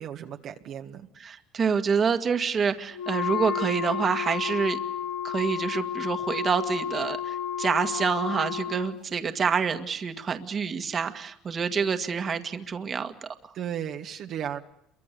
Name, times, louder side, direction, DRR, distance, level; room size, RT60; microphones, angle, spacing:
voice 1, 0.0-1.1 13.5-14.6, right 9 dB, 55° right, 3 dB, 1.6 m, -35 dB
voice 2, 1.2-4.8 5.2-13.3, right 6 dB, 35° right, 8 dB, 1.8 m, -27 dB
Wind instrument woodwind instrument, 2.9-9.0, left 8 dB, 85° left, 2.3 m, -31 dB
28.0 x 23.5 x 6.8 m, 0.80 s
supercardioid pair, 105°, 0 cm